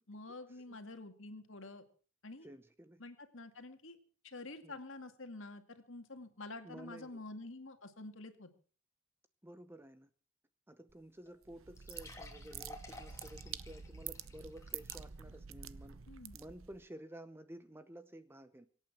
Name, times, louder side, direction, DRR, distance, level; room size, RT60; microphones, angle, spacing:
voice 1, 0.1-1.8 2.2-2.5 3.0-4.0 4.2-8.5 16.1-16.4, left 2 dB, 60° left, 7 dB, 2.1 m, -48 dB
voice 2, 2.4-3.0 4.6-4.8 6.6-7.2 9.4-10.1 10.7-16.0 16.3-18.7, right 1 dB, 10° right, 11 dB, 0.7 m, -53 dB
sound 1, 10.9-11.0 11.3-11.4 11.7-15.4 15.8-15.9 16.5-16.6, left 2 dB, 15° left, 2.5 m, -54 dB
sound 2, 11.4-16.8, right 8 dB, 65° right, 0.7 m, -48 dB
24.0 x 8.9 x 6.1 m, 0.42 s
head